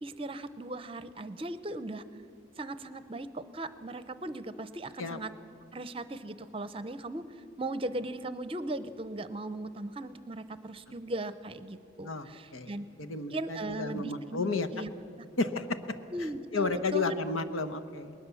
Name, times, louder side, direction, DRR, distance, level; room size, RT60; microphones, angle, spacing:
voice 1, 0.0-2.0 2.6-5.3 5.7-7.2 7.6-12.9 13.3-14.9 15.2-15.3 16.1-17.1, right 2 dB, 25° right, 13 dB, 0.6 m, -38 dB
voice 2, 13.0-14.7 15.4-15.9 16.5-18.1, left 3 dB, 85° left, 10 dB, 1.1 m, -32 dB
20.5 x 19.5 x 7.0 m, 2.6 s
head